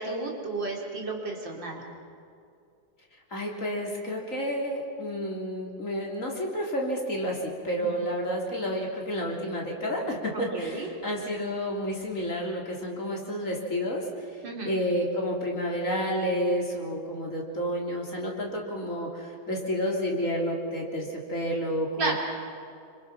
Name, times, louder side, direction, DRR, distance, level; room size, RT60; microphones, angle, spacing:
voice 1, 0.0-1.8 7.8-8.0 10.5-10.9 14.4-14.7 22.0-22.2, right 3 dB, 60° right, 0 dB, 3.9 m, -32 dB
voice 2, 3.3-14.4 14.7-22.2, equal, 40° left, -1 dB, 3.7 m, -30 dB
27.0 x 24.5 x 6.0 m, 2.4 s
omnidirectional pair, 2.2 m